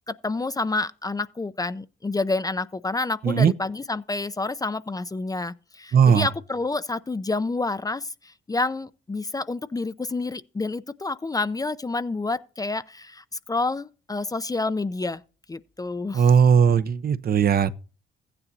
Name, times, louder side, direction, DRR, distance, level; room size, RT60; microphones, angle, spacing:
voice 1, 0.1-15.2 15.5-16.3, left 3 dB, 20° left, 0.5 m, -29 dB
voice 2, 5.9-6.3 16.1-17.7, right 7 dB, 50° right, 0.7 m, -18 dB
15.0 x 9.9 x 2.7 m
cardioid pair, 90°, 20 cm